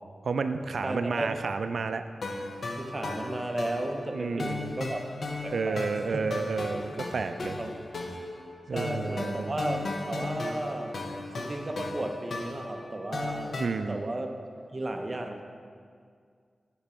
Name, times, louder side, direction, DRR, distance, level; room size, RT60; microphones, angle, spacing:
voice 1, 0.2-2.0 4.1-4.8 5.5-7.6 8.7-9.5 13.6-14.1, right 4 dB, 65° right, 9 dB, 0.3 m, -31 dB
voice 2, 0.8-1.4 2.8-5.1 5.4-6.2 7.6-7.7 8.7-11.1 11.4-14.3 14.7-15.4, right 1 dB, 25° right, 4 dB, 0.6 m, -34 dB
sound 1, 2.2-13.7, left 2 dB, 60° left, 0.7 m, -36 dB
8.5 x 6.0 x 4.3 m, 2.2 s
wide cardioid pair, 150°, 0 cm